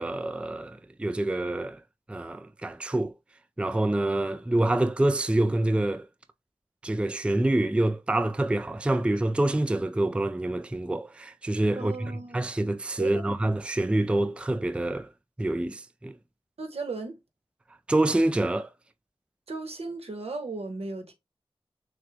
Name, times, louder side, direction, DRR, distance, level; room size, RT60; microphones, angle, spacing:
voice 1, 0.0-1.8 2.1-3.1 3.6-6.1 6.8-15.1 15.4-16.1 17.9-18.7, right 1 dB, 10° right, 0.3 m, -26 dB
voice 2, 11.8-12.4 13.0-13.2 16.6-17.2 19.5-21.1, right 3 dB, 80° right, 1.1 m, -35 dB
6.3 x 2.2 x 3.4 m
wide cardioid pair, 70°, 10 cm